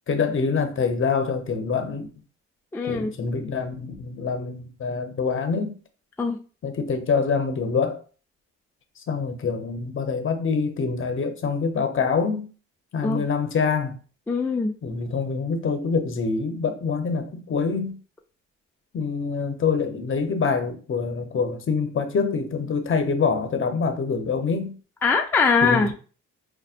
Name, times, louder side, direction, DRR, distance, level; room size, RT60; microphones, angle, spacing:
voice 1, 0.1-2.1 2.8-5.7 6.6-8.0 9.1-12.5 12.9-14.0 14.8-18.0 18.9-24.8 25.6-25.9, left 5 dB, 40° left, 0.8 m, -25 dB
voice 2, 2.7-3.1 6.2-6.4 13.0-13.2 14.3-14.7 25.0-25.9, left 4 dB, 5° left, 0.3 m, -22 dB
5.5 x 2.1 x 2.5 m
cardioid pair, 90°, 30 cm